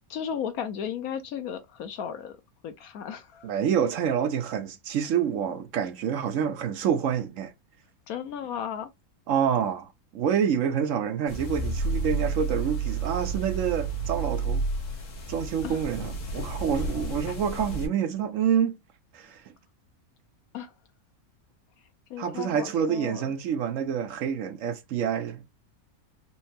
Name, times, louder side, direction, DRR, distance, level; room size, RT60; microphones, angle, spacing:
voice 1, 0.1-2.4 2.6-3.5 8.1-8.9 15.6-15.8 20.5-20.7 22.1-23.3, left 8 dB, 75° left, 1.2 m, -35 dB
voice 2, 3.4-7.5 9.3-14.7 15.3-18.8 19.1-19.5 22.2-25.4, right 8 dB, 70° right, 0.9 m, -27 dB
sound 1, 11.3-17.9, right 3 dB, 60° left, 1.5 m, -31 dB
4.4 x 2.7 x 2.7 m
omnidirectional pair, 1.6 m